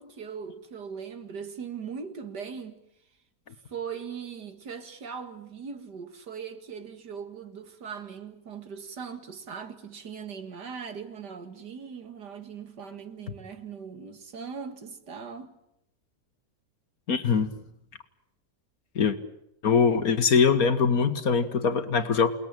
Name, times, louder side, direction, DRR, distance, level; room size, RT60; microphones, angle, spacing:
voice 1, 0.0-2.8 3.5-15.5, right 6 dB, 80° right, 2.6 m, -40 dB
voice 2, 17.1-17.5 19.0-19.2 19.6-22.3, left 5 dB, 60° left, 1.8 m, -22 dB
28.5 x 20.0 x 9.0 m
omnidirectional pair, 1.8 m